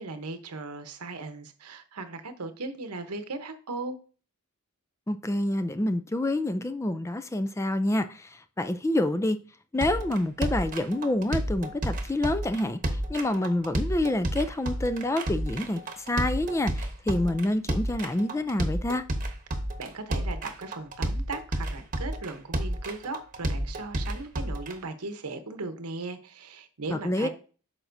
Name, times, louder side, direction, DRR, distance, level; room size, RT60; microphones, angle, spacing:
voice 1, 0.0-4.0 19.8-27.3, right 3 dB, 85° right, 1.0 m, -37 dB
voice 2, 5.1-8.3 8.6-9.4 9.7-12.8 13.1-19.0 26.9-27.3, left 1 dB, 15° left, 0.4 m, -27 dB
sound 1, 9.8-24.7, right 1 dB, 35° right, 1.0 m, -31 dB
9.0 x 5.9 x 2.6 m
head